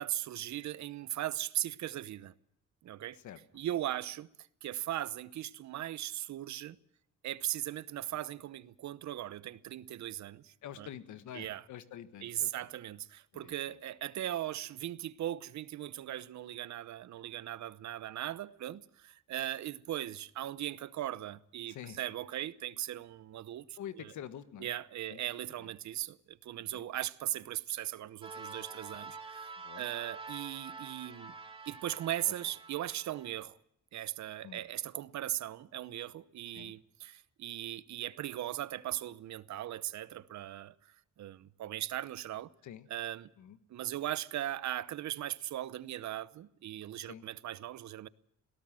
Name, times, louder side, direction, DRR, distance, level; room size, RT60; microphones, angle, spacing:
voice 1, 0.0-2.3 2.8-3.2 3.5-4.3 4.6-6.8 7.2-10.9 11.3-11.6 12.2-24.1 24.6-29.5 29.8-31.3 31.7-33.6 33.9-42.5 42.9-43.3 43.7-48.1, right 13 dB, 65° right, 0.9 m, -38 dB
voice 2, 10.6-12.7 13.3-13.5 21.7-22.0 23.8-24.7 25.1-25.2 25.6-25.7 26.7-26.8 29.6-29.9 34.4-34.6 36.5-36.7 42.6-42.9 43.4-43.6 47.0-47.2, left 10 dB, 75° left, 1.6 m, -47 dB
sound 1, 28.2-33.4, right 4 dB, 15° right, 3.4 m, -47 dB
21.5 x 17.5 x 7.5 m
cardioid pair, 90°, 30 cm